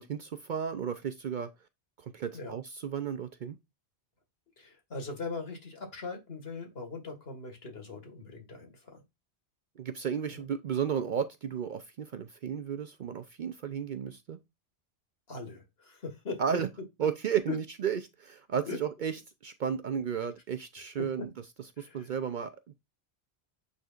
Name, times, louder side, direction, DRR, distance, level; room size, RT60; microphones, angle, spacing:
voice 1, 0.0-1.5 2.0-3.6 9.8-14.4 16.4-16.7 17.0-19.2 19.4-21.3 21.8-22.7, right 7 dB, 60° right, 0.6 m, -33 dB
voice 2, 4.6-9.0 10.3-10.4 15.3-16.4 17.5-17.6 18.7-18.8 21.0-21.3 21.8-22.1, left 4 dB, 65° left, 2.1 m, -40 dB
9.2 x 4.3 x 2.4 m
omnidirectional pair, 1.1 m